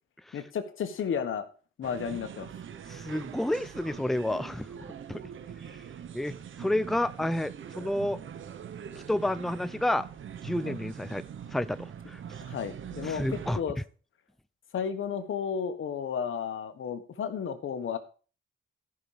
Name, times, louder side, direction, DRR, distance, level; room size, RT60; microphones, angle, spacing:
voice 1, 0.3-1.5 1.8-2.5 10.6-10.8 12.4-13.8 14.7-18.0, left 7 dB, 80° left, 9 dB, 1.5 m, -33 dB
sound 1, 1.8-13.6, right 8 dB, 70° right, 1.0 m, -43 dB
voice 2, 2.9-4.7 5.1-5.2 6.1-8.2 9.1-10.1 10.4-11.2 11.5-11.8 12.1-12.2 13.0-13.6, left 1 dB, ahead, 14 dB, 0.6 m, -30 dB
14.0 x 6.2 x 5.1 m, 0.38 s
cardioid pair, 75°, 21 cm